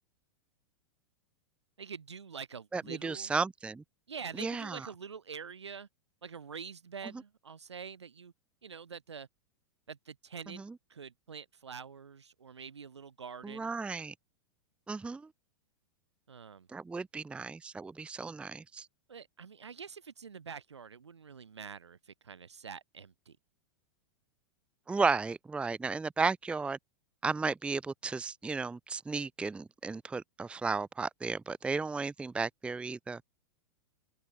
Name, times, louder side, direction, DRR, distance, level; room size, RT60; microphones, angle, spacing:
voice 1, 1.8-3.3 4.1-5.9 6.2-8.3 8.6-9.3 9.9-10.6 10.9-13.8 16.3-16.7 19.1-23.4, right 6 dB, 75° right, 3.3 m, -46 dB
voice 2, 2.7-3.8 4.4-4.8 10.6-10.7 13.4-14.1 14.9-15.3 16.7-18.9 24.9-26.8 27.2-33.2, right 4 dB, 5° right, 0.6 m, -34 dB
open air
figure-of-eight pair, 95°, 15 cm